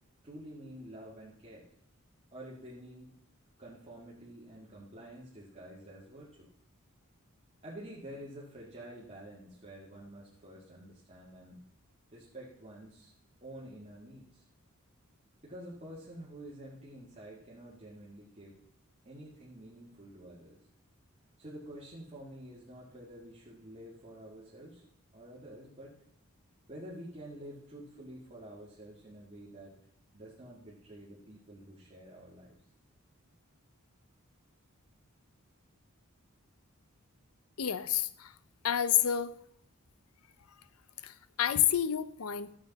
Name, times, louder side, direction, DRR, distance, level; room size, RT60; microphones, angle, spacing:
voice 1, 0.2-1.7 2.3-3.1 3.6-6.5 7.6-11.6 12.1-13.1 13.4-14.5 15.4-18.6 19.0-20.6 21.4-24.9 25.1-26.0 26.7-29.8 30.1-32.6, right 1 dB, 30° right, -6 dB, 2.0 m, -49 dB
voice 2, 37.6-38.3 38.6-39.3 41.0-42.5, left 10 dB, 85° left, 15 dB, 0.6 m, -29 dB
13.5 x 7.6 x 4.0 m, 0.70 s
head